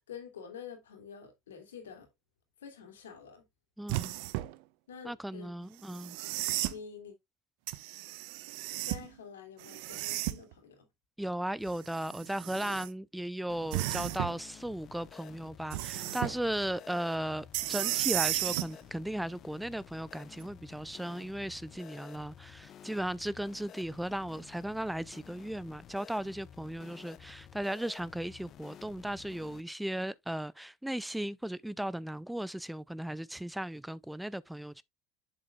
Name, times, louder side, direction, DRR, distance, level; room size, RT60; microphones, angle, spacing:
voice 1, 0.1-2.1 2.6-3.5 4.9-6.1 6.7-7.1 8.7-10.9, left 7 dB, 80° left, 2.5 m, -48 dB
voice 2, 3.8-4.1 5.0-6.2 11.2-34.8, right 1 dB, 5° right, 0.4 m, -36 dB
sound 1, 3.9-4.5 5.9-6.8 7.7-9.1 9.6-10.5 11.7-12.9 13.7-14.4 15.7-16.4 17.5-18.7 20.4-20.5, right 17 dB, 65° right, 0.6 m, -34 dB
sound 2, 13.5-29.6, left 10 dB, 45° left, 0.7 m, -52 dB
7.6 x 7.3 x 2.2 m
hypercardioid pair, 75°, 0 cm